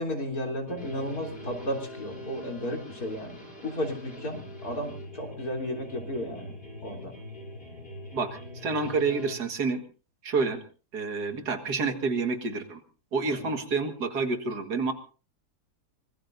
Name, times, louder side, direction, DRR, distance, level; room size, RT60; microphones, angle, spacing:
voice 1, 0.0-3.4 3.6-6.5 6.8-7.1 13.3-13.5, equal, 65° left, 2 dB, 3.9 m, -33 dB
sound 1, 0.7-9.3, left 1 dB, 35° left, 6.4 m, -43 dB
voice 2, 8.1-9.8 10.2-10.6 10.9-12.8 13.1-14.9, right 4 dB, 80° right, 7 dB, 2.4 m, -28 dB
24.5 x 20.5 x 2.7 m, 0.36 s
omnidirectional pair, 1.7 m